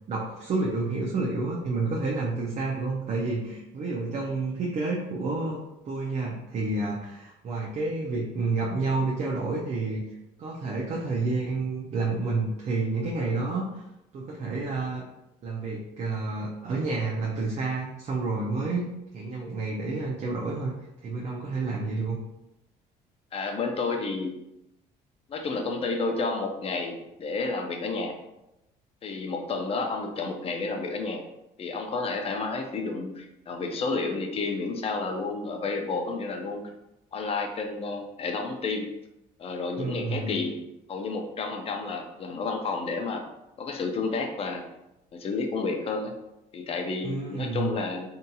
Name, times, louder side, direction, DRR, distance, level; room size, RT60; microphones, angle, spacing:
voice 1, 0.1-5.6 5.9-10.0 10.4-13.8 14.1-15.0 15.4-18.8 19.1-20.7 21.0-22.2 39.8-40.4 47.0-47.7, right 3 dB, 40° right, -3 dB, 0.5 m, -29 dB
voice 2, 23.3-24.4 25.3-28.2 29.0-31.2 31.6-36.6 37.1-38.9 39.4-40.6 40.9-43.2 43.6-44.6 45.1-46.1 46.5-48.1, left 3 dB, 35° left, 3 dB, 0.5 m, -31 dB
2.7 x 2.6 x 2.3 m, 0.89 s
cardioid pair, 110°, 17 cm